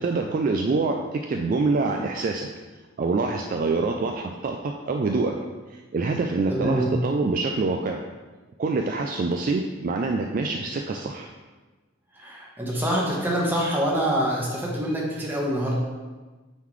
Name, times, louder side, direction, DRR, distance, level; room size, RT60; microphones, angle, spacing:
voice 1, 0.0-2.5 3.0-5.3 5.7-8.0 8.6-11.3, right 3 dB, 40° right, 3 dB, 0.3 m, -25 dB
voice 2, 6.5-6.9 12.2-15.7, right 1 dB, 10° right, -3 dB, 1.1 m, -25 dB
9.1 x 3.8 x 3.1 m, 1.3 s
head